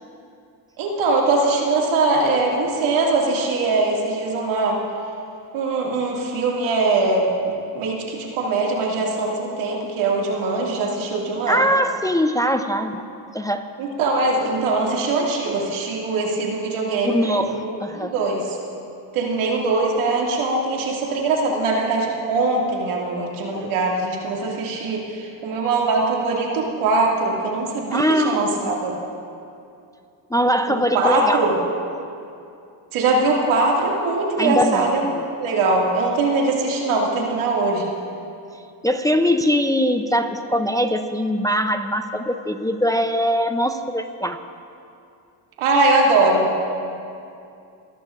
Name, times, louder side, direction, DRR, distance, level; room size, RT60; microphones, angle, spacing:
voice 1, 0.8-4.8 5.5-11.6 13.8-18.6 19.1-29.0 30.7-31.6 32.9-35.1 35.4-37.9 45.6-46.5, right 3 dB, 80° right, -2 dB, 2.3 m, -21 dB
voice 2, 11.5-13.1 13.3-13.6 17.0-18.1 27.9-28.4 30.3-31.4 34.4-35.1 38.8-44.4, equal, 10° left, 8 dB, 0.5 m, -21 dB
23.5 x 13.0 x 2.5 m, 2.6 s
supercardioid pair, 75°, 49 cm